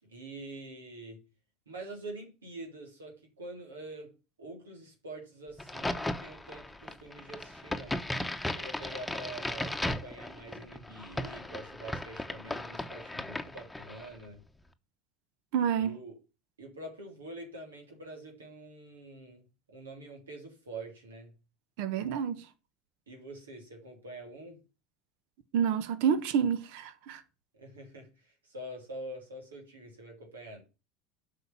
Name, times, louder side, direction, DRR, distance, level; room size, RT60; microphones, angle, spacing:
voice 1, 0.0-1.2 1.6-4.1 4.4-8.0 8.5-14.4 15.8-16.1 16.6-21.3 23.1-24.6 27.5-30.6, right 2 dB, 85° right, 3.3 m, -45 dB
Crack, 5.6-14.2, left 1 dB, 5° left, 1.1 m, -37 dB
voice 2, 15.5-16.0 21.8-22.5 25.5-27.2, right 8 dB, 65° right, 1.1 m, -28 dB
8.0 x 5.8 x 7.0 m
hypercardioid pair, 75°, 0 cm